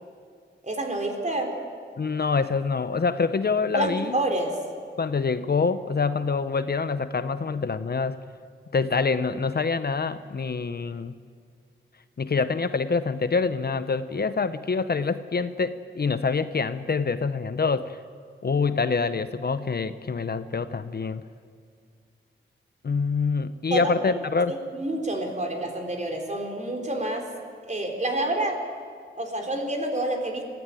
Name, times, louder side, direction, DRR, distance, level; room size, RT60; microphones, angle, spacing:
voice 1, 0.6-1.5 3.7-4.6 23.7-23.9 24.5-27.3 27.7-28.6 29.2-30.4, right 1 dB, 35° right, 2 dB, 4.0 m, -28 dB
voice 2, 2.0-4.2 5.0-8.2 8.7-11.1 12.2-18.0 18.4-21.2 22.8-24.5, left 4 dB, 50° left, 12 dB, 0.8 m, -26 dB
22.0 x 15.5 x 9.1 m, 2.1 s
wide cardioid pair, 75°, 20 cm